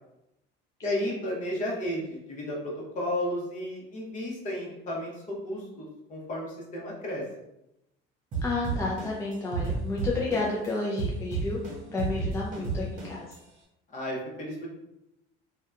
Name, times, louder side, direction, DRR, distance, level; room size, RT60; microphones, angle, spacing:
voice 1, 0.8-7.2 13.9-14.7, left 1 dB, 35° left, -3 dB, 0.8 m, -33 dB
sound 1, 8.3-10.7 11.0-13.3, right 4 dB, 40° right, 0.7 m, -31 dB
voice 2, 8.4-11.6 11.9-13.2, left 3 dB, 15° left, -5 dB, 0.3 m, -31 dB
2.7 x 2.2 x 2.3 m, 0.87 s
cardioid pair, 135°, 21 cm